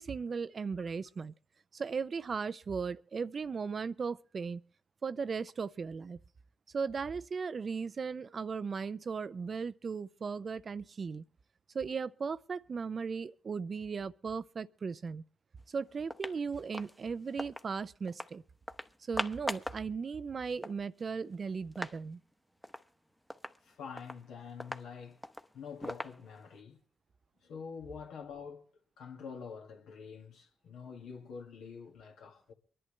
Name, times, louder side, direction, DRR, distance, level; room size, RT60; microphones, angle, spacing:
voice 1, 0.0-1.3 1.7-4.6 5.0-6.2 6.7-11.2 11.7-15.2 15.7-18.4 19.1-22.2, right 5 dB, 50° right, 0.5 m, -37 dB
sound 1, 15.6-15.7 16.0-17.7 18.1-18.3 18.7-19.8 20.2-20.3 20.4-22.0 22.3-22.4 22.6-22.9 23.3-26.6, left 1 dB, 10° left, 0.9 m, -42 dB
voice 2, 23.6-25.2 25.5-26.8 27.4-28.6 29.0-32.5, left 6 dB, 80° left, 1.8 m, -46 dB
24.0 x 11.0 x 3.2 m
supercardioid pair, 45°, 0 cm